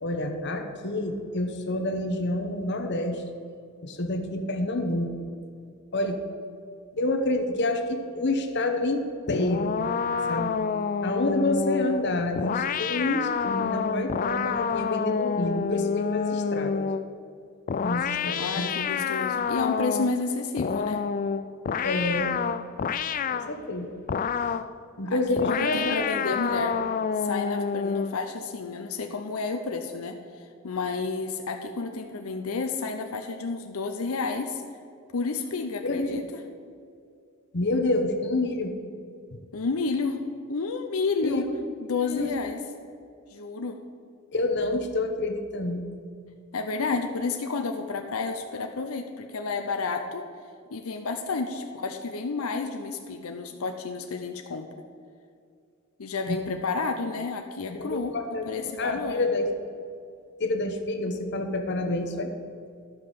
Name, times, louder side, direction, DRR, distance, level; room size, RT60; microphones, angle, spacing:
voice 1, 0.0-3.2 3.8-5.1 5.9-6.2 7.0-9.8 10.3-10.6 11.0-16.9 17.8-18.7 21.8-22.4 23.3-23.9 25.0-26.0 35.8-36.2 37.5-38.7 39.3-39.4 41.2-41.5 42.0-42.3 44.3-45.9 56.3-56.4 57.7-59.5 60.4-62.3, left 2 dB, 55° left, 5 dB, 1.0 m, -28 dB
sound 1, 9.3-17.1 17.7-20.2 20.6-23.5 24.1-24.7 25.4-28.2, left 6 dB, 40° left, 0.3 m, -28 dB
voice 2, 18.4-21.0 25.0-25.2 25.5-26.8 27.2-34.6 35.1-36.4 39.5-40.2 40.5-41.5 41.9-42.6 43.3-43.8 46.5-50.3 50.7-54.7 56.0-58.2 58.5-59.2, left 4 dB, 85° left, 5 dB, 0.7 m, -31 dB
12.0 x 5.7 x 6.6 m, 2.3 s
head